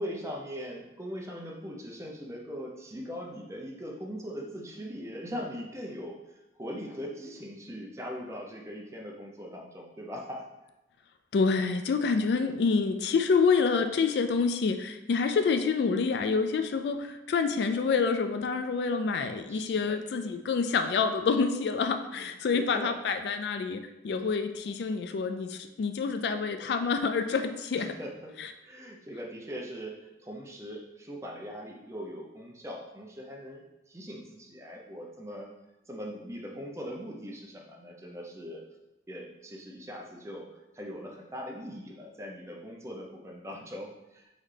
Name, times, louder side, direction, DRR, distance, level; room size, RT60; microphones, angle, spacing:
voice 1, 0.0-10.4 19.5-20.0 22.1-23.0 27.8-28.3 28.6-35.5 35.9-38.7 39.1-44.3, equal, 15° right, 0 dB, 0.5 m, -41 dB
voice 2, 11.3-27.9 28.4-28.5, left 5 dB, 65° left, 8 dB, 0.3 m, -27 dB
4.1 x 4.0 x 3.2 m, 0.98 s
head